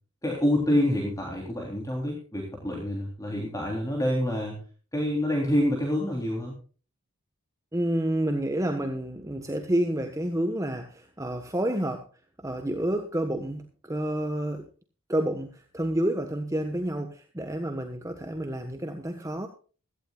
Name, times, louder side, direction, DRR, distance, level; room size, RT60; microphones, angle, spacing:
voice 1, 0.2-4.6 4.9-6.5, left 1 dB, 15° left, 0 dB, 3.4 m, -27 dB
voice 2, 7.7-12.1 12.4-14.7 15.1-19.5, right 1 dB, 15° right, 5 dB, 1.3 m, -29 dB
16.5 x 15.0 x 2.4 m, 0.37 s
head